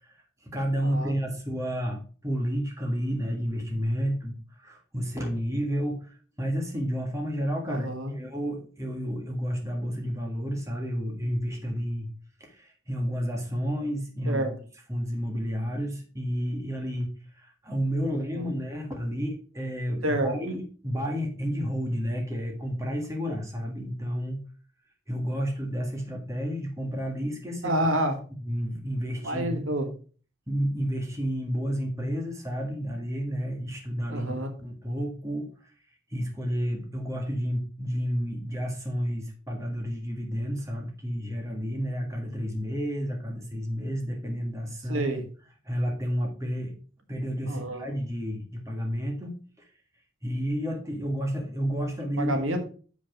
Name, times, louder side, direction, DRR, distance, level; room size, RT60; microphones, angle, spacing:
voice 1, 0.0-12.1 12.4-24.4 25.1-27.8 28.4-29.6 30.5-35.5 36.1-45.1 45.6-46.7 47.1-49.7 50.2-52.6, equal, 15° right, 1.6 m, -31 dB
voice 2, 0.8-1.2 7.7-8.1 14.3-14.5 18.3-18.5 20.0-20.4 27.6-28.2 29.2-29.9 34.1-34.5 44.9-45.2 47.5-47.9 52.2-52.6, right 1 dB, 80° right, 1.4 m, -28 dB
7.1 x 5.1 x 5.2 m
head